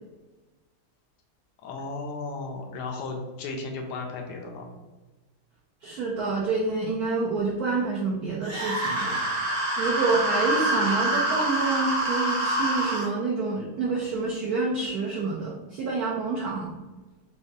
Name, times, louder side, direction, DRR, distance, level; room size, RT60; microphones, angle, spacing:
voice 1, 1.6-4.7, left 3 dB, 80° left, 2 dB, 0.9 m, -35 dB
voice 2, 5.8-9.2 9.8-16.7, right 3 dB, 75° right, -4 dB, 0.8 m, -28 dB
sound 1, 8.4-13.1, right 1 dB, 35° right, 0.6 m, -26 dB
4.8 x 2.2 x 2.7 m, 1.2 s
omnidirectional pair, 2.3 m